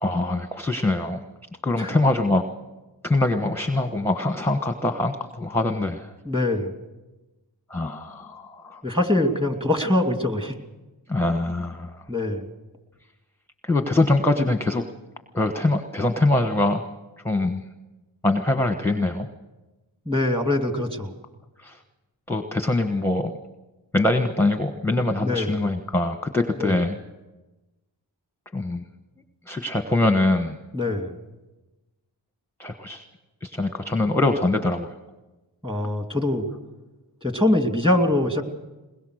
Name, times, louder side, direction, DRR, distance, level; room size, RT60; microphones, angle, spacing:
voice 1, 0.0-1.2 1.6-2.4 3.0-6.1 7.7-8.8 11.1-12.0 13.6-14.8 15.3-16.9 17.2-17.6 18.2-19.3 21.6-21.8 22.3-23.3 23.9-27.0 28.5-28.8 29.5-30.6 32.6-33.0 33.4-34.9, left 2 dB, 5° left, 6 dB, 1.2 m, -23 dB
voice 2, 6.3-6.7 8.8-10.6 12.1-12.5 20.1-21.1 25.2-25.5 26.6-26.8 30.7-31.2 35.6-36.5 37.2-38.4, left 1 dB, 10° right, 5 dB, 2.7 m, -23 dB
21.5 x 21.0 x 6.5 m, 1.1 s
cardioid pair, 60°, 47 cm